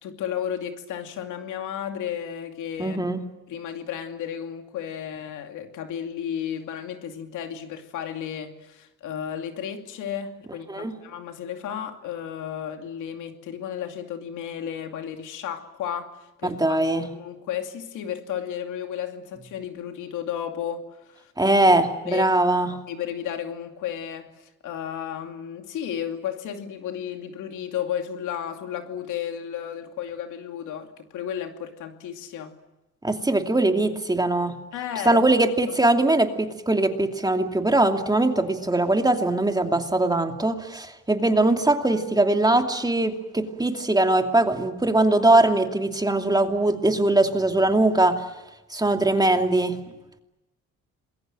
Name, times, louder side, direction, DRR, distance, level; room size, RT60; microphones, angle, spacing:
voice 1, 0.0-21.3 22.1-22.3 22.9-24.3 24.6-32.5 34.7-35.2, left 9 dB, 85° left, 5 dB, 2.6 m, -33 dB
voice 2, 2.8-3.2 10.7-10.9 16.4-17.1 21.4-22.8 33.0-34.6 35.0-48.2 48.7-49.8, right 2 dB, 15° right, 4 dB, 2.6 m, -21 dB
27.5 x 21.5 x 7.7 m, 1.0 s
cardioid pair, 90°, 30 cm